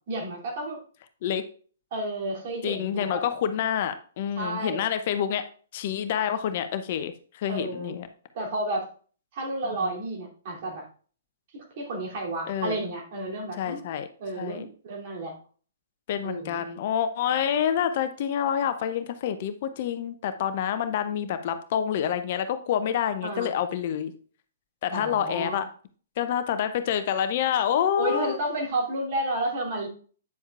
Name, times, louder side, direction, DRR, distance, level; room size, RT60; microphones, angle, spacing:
voice 1, 0.1-0.8 1.9-3.2 4.3-4.8 7.5-8.0 8.3-8.9 9.3-10.8 11.5-13.8 14.2-15.4 16.2-16.6 23.2-23.5 24.9-25.6 28.0-29.9, right 2 dB, 45° right, -1 dB, 2.9 m, -31 dB
voice 2, 2.6-5.5 5.7-8.1 9.7-9.9 12.5-12.8 13.6-14.1 14.4-14.6 16.1-24.1 24.8-25.6 26.2-28.4, left 9 dB, 45° left, 10 dB, 0.7 m, -27 dB
9.3 x 7.1 x 2.4 m, 0.42 s
figure-of-eight pair, 120°, 0 cm